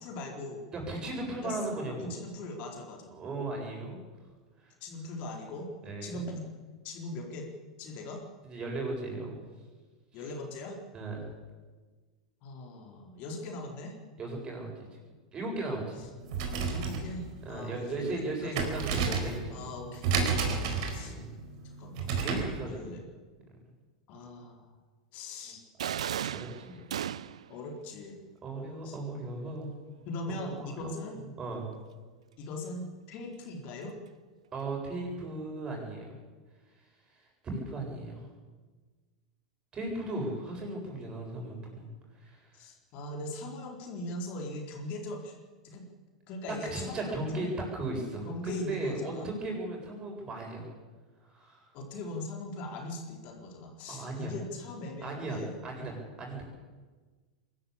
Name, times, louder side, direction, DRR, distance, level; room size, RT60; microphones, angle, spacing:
voice 1, 0.0-0.6 1.4-1.7 2.0-3.1 4.8-5.7 6.0-6.5 6.8-7.5 7.8-8.2 10.1-10.8 12.4-14.0 16.7-18.6 19.5-20.0 20.4-21.2 21.8-22.2 22.6-23.0 24.1-24.7 25.1-25.6 27.5-28.2 28.8-29.0 30.1-31.2 32.4-34.0 42.5-45.4 45.6-45.9 46.3-47.5 48.3-49.3 51.7-55.5, left 2 dB, 45° left, 1 dB, 4.1 m, -40 dB
voice 2, 0.7-2.1 3.1-4.0 4.6-4.7 5.8-6.2 8.4-9.4 10.1-10.3 10.9-11.3 14.2-14.7 15.3-16.0 17.4-19.6 21.0-21.3 22.2-22.8 25.4-25.5 26.3-26.8 28.4-29.8 30.3-30.9 31.4-31.7 34.5-36.1 37.4-38.3 39.7-41.9 42.2-42.5 46.5-50.7 51.2-51.7 53.9-54.3 55.0-56.4, right 2 dB, 25° right, 0 dB, 7.6 m, -36 dB
sound 1, 16.2-22.6, right 5 dB, 55° right, 4.5 m, -32 dB
sound 2, 25.8-27.5, right 9 dB, 75° right, 0.6 m, -35 dB
23.0 x 13.5 x 8.7 m, 1.4 s
hypercardioid pair, 95°, 3 cm